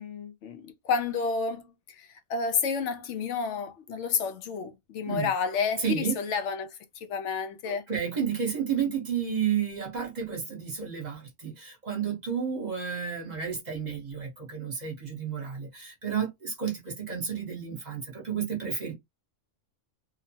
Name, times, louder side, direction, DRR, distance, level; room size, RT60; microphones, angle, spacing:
voice 1, 0.0-1.6 2.0-6.7 7.1-7.8, left 5 dB, 75° left, 0.9 m, -30 dB
voice 2, 5.8-6.1 7.7-18.9, right 7 dB, 40° right, 1.0 m, -31 dB
2.9 x 2.1 x 2.7 m
omnidirectional pair, 1.3 m